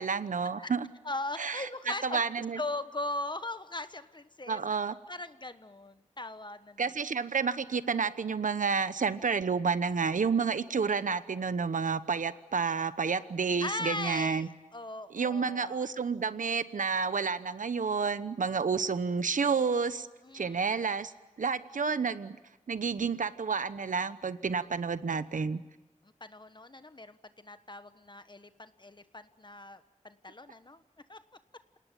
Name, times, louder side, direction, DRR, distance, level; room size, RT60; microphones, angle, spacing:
voice 1, 0.0-0.9 1.4-1.7 2.0-2.6 4.5-5.0 6.8-14.5 15.1-20.1 20.3-21.1 21.4-22.4 22.7-25.6, right 5 dB, 90° right, 13 dB, 1.0 m, -30 dB
voice 2, 1.0-2.2 2.5-4.6 5.1-6.8 13.6-15.9 20.2-20.6 26.2-30.8 31.1-31.2, left 2 dB, 35° left, 11 dB, 1.3 m, -39 dB
28.0 x 18.5 x 9.1 m, 1.1 s
wide cardioid pair, 55°, 13 cm